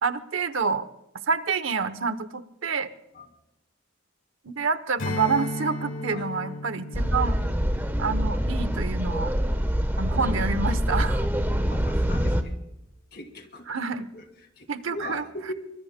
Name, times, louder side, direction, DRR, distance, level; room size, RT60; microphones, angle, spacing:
voice 1, 0.0-0.9 1.3-2.9 4.4-7.4 8.0-9.3 10.0-11.2 13.7-14.1 14.7-15.2, right 5 dB, 65° right, 12 dB, 0.9 m, -28 dB
Strum, 5.0-9.8, left 1 dB, 70° left, 1.7 m, -36 dB
sound 1, 6.9-12.4, equal, 10° right, 1.0 m, -25 dB
voice 2, 11.7-12.5 13.1-13.7 14.1-14.2 14.6-15.5, left 1 dB, 50° left, 7 dB, 2.0 m, -39 dB
23.5 x 22.0 x 2.2 m, 0.88 s
head